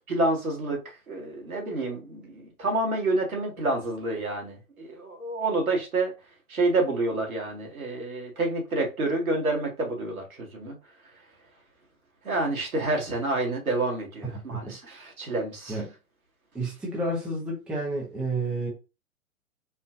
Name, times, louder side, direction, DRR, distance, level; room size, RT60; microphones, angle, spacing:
voice 1, 0.1-0.8 1.1-6.1 6.5-10.8 12.2-15.8, right 2 dB, 75° right, 1.6 m, -28 dB
voice 2, 16.5-18.7, right 2 dB, ahead, 0.6 m, -30 dB
4.2 x 2.5 x 2.5 m
figure-of-eight pair, 110°, 42 cm